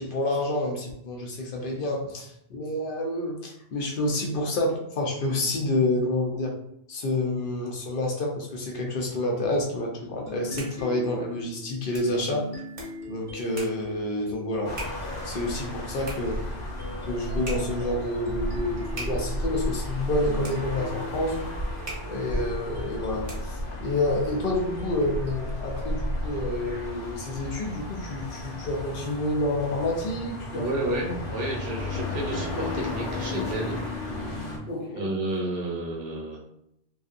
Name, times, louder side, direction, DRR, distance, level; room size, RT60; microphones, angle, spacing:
voice 1, 0.0-6.5 6.9-12.5 13.1-14.8 15.2-16.4 17.1-21.5 22.0-31.0 34.6-35.1, left 1 dB, 55° left, 0 dB, 0.7 m, -28 dB
sound 1, 10.2-23.7, right 2 dB, 35° right, 0.8 m, -44 dB
sound 2, 10.3-27.4, left 1 dB, 15° left, 0.6 m, -42 dB
sound 3, 14.6-34.6, left 1 dB, 90° left, 1.1 m, -33 dB
voice 2, 30.5-33.8 34.1-34.6 34.9-36.4, right 1 dB, 60° right, -1 dB, 0.9 m, -31 dB
2.5 x 2.5 x 2.4 m, 0.75 s
omnidirectional pair, 1.2 m